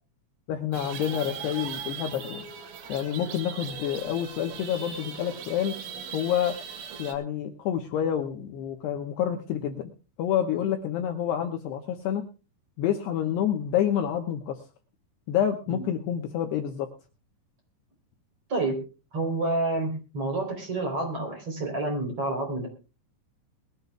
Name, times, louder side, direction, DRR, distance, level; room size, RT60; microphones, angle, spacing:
voice 1, 0.5-2.4 2.9-5.8 6.1-6.6 7.0-9.9 10.2-12.3 12.8-14.6 15.3-16.9, left 9 dB, 75° left, 5 dB, 2.7 m, -28 dB
sound 1, 0.7-7.1, right 7 dB, 70° right, 4.5 m, -39 dB
sound 2, 2.0-6.5, left 8 dB, 55° left, 6.7 m, -51 dB
voice 2, 18.5-18.9 19.1-22.7, right 2 dB, 30° right, 3 dB, 4.3 m, -28 dB
21.5 x 15.0 x 2.3 m, 0.32 s
omnidirectional pair, 5.7 m